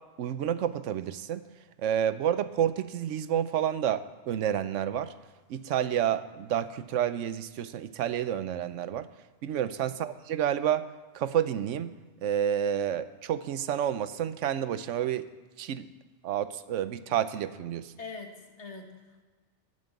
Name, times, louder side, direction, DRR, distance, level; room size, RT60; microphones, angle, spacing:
voice 1, 0.2-1.4 1.8-5.1 5.5-9.1 9.4-10.9 11.1-11.9 12.2-15.3 15.6-15.9 16.2-17.9, right 10 dB, 85° right, 14 dB, 1.0 m, -29 dB
voice 2, 18.0-19.2, left 4 dB, 70° left, 3 dB, 1.9 m, -43 dB
11.5 x 8.5 x 8.3 m, 1.3 s
omnidirectional pair, 1.2 m